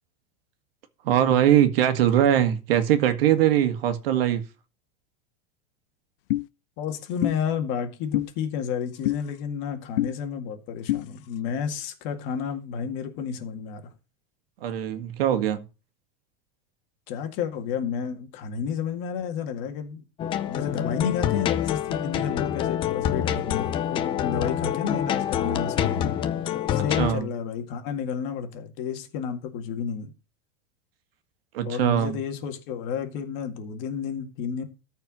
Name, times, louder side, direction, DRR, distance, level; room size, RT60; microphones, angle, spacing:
voice 1, 1.0-4.4 14.6-15.6 27.0-27.3 31.5-32.2, right 11 dB, 75° right, 1.8 m, -21 dB
sound 1, 6.3-6.5 7.2-7.4 8.1-8.3 9.1-9.2 10.0-10.1 10.9-11.0, left 17 dB, 70° left, 0.6 m, -24 dB
voice 2, 6.8-13.9 17.1-20.0 20.4-26.2 26.8-30.1 31.6-34.6, left 7 dB, 40° left, 2.0 m, -31 dB
sound 2, 20.2-27.1, left 10 dB, 15° left, 0.5 m, -26 dB
13.5 x 4.8 x 6.1 m
supercardioid pair, 170°, 30 cm